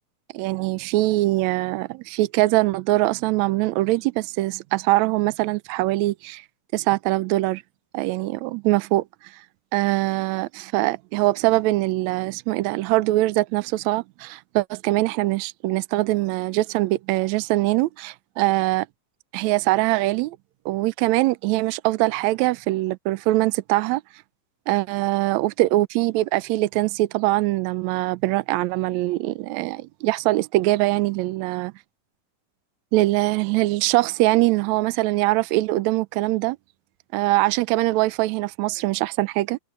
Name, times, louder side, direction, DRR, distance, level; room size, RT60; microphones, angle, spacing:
voice 1, 0.3-6.4 6.7-7.6 7.9-9.0 9.7-18.9 19.3-20.4 20.6-24.0 24.7-31.7 32.9-36.6 37.1-39.6, right 18 dB, 85° right, 1.6 m, -22 dB
omnidirectional pair, 3.8 m